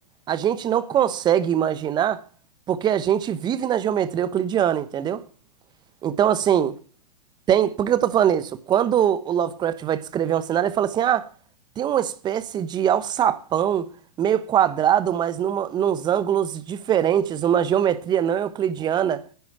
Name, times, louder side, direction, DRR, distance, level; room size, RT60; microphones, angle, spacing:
voice 1, 0.3-2.2 2.7-5.2 6.0-6.7 7.5-11.3 11.8-13.9 14.2-19.2, right 9 dB, 20° right, 1.1 m, -22 dB
10.5 x 9.3 x 8.7 m
hypercardioid pair, 130°, 20 cm